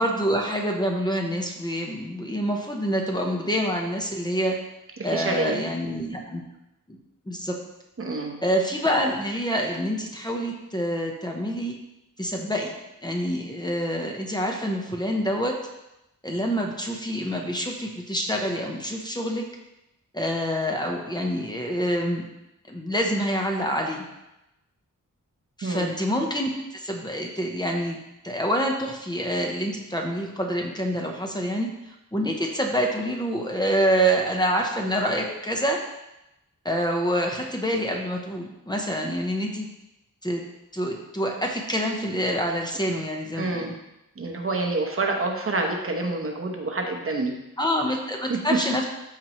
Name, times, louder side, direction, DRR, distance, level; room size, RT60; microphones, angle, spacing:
voice 1, 0.0-4.6 5.0-6.4 6.9-7.0 7.3-7.5 8.4-11.7 12.2-12.8 13.0-15.5 16.2-19.4 20.1-22.2 22.7-24.0 25.6-28.0 28.2-35.8 36.6-39.7 40.2-40.4 40.7-43.7 47.6-48.8, equal, 10° left, 1 dB, 0.9 m, -26 dB
voice 2, 5.0-5.6 8.0-8.4 25.6-25.9 43.3-43.7 44.2-47.3 48.3-48.6, right 3 dB, 40° right, 2 dB, 1.0 m, -27 dB
13.0 x 4.6 x 3.1 m, 0.90 s
wide cardioid pair, 150°, 33 cm